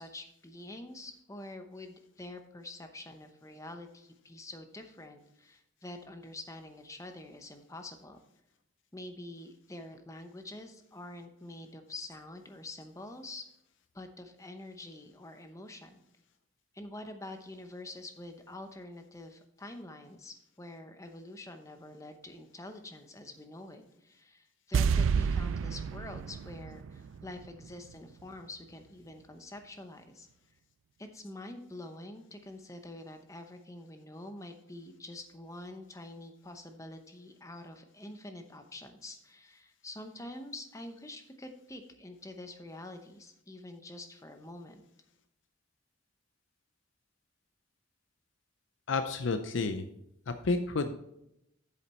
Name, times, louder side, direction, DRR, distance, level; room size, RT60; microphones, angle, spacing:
voice 1, 0.0-8.2 8.9-13.5 13.9-16.0 16.7-30.3 31.0-44.8, left 2 dB, 15° left, 6 dB, 0.8 m, -46 dB
sound 1, 24.7-27.9 28.2-28.3, right 6 dB, 75° right, 0.3 m, -30 dB
voice 2, 48.9-49.9 50.3-50.9, left 3 dB, 70° left, 8 dB, 0.5 m, -30 dB
8.2 x 7.2 x 4.3 m, 0.81 s
head